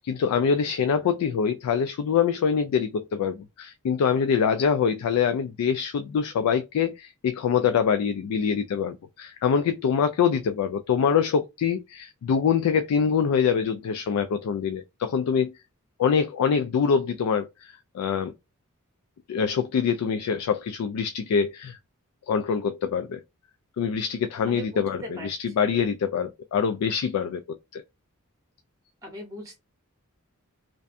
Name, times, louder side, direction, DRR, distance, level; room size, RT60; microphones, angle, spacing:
voice 1, 0.0-15.5 16.0-18.3 19.3-21.8 22.3-23.2 23.8-27.4 27.7-27.8, left 6 dB, 80° left, 0.3 m, -24 dB
voice 2, 24.5-25.3 25.6-25.8 29.0-29.6, equal, 15° right, 0.7 m, -39 dB
2.6 x 2.1 x 2.4 m
head